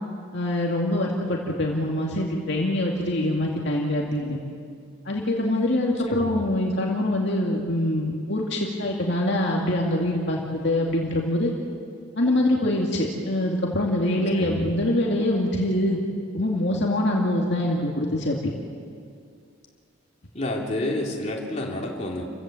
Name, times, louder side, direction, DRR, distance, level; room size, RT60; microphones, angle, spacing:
voice 1, 0.3-4.4 5.1-11.5 12.2-16.0 16.3-18.5, left 1 dB, 55° left, -1 dB, 2.4 m, -24 dB
voice 2, 6.1-6.4 14.4-14.7 20.3-22.2, left 1 dB, 30° left, -1 dB, 3.2 m, -29 dB
29.5 x 16.0 x 7.8 m, 2.3 s
head